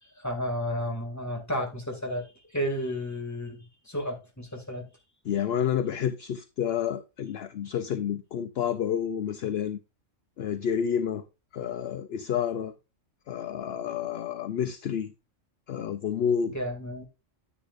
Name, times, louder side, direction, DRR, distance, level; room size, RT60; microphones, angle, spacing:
voice 1, 0.0-4.9 16.4-17.1, equal, 15° left, 2.3 m, -32 dB
voice 2, 5.3-9.8 10.4-11.2 11.5-12.7 13.3-15.1 15.7-16.6, left 8 dB, 60° left, 0.8 m, -29 dB
9.9 x 9.8 x 2.5 m
omnidirectional pair, 1.3 m